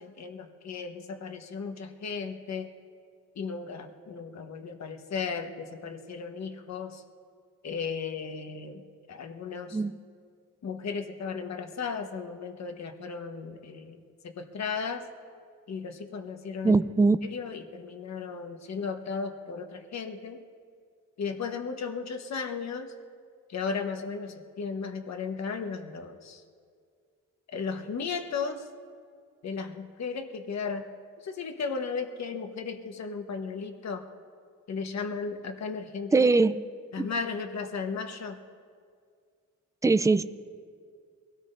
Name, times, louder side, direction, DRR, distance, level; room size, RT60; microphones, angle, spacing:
voice 1, 0.0-2.7 3.3-7.0 7.6-8.8 9.1-9.8 10.6-15.1 15.7-16.8 17.3-20.4 21.2-22.9 23.5-26.4 27.5-28.7 29.4-30.9 31.2-34.0 34.7-36.3 36.9-38.4, left 5 dB, 55° left, 6 dB, 1.3 m, -35 dB
voice 2, 16.6-17.3 36.1-36.6 37.0-37.1 39.8-40.2, right 3 dB, 10° right, 13 dB, 0.4 m, -22 dB
23.0 x 17.0 x 2.6 m, 2.1 s
cardioid pair, 85°, 32 cm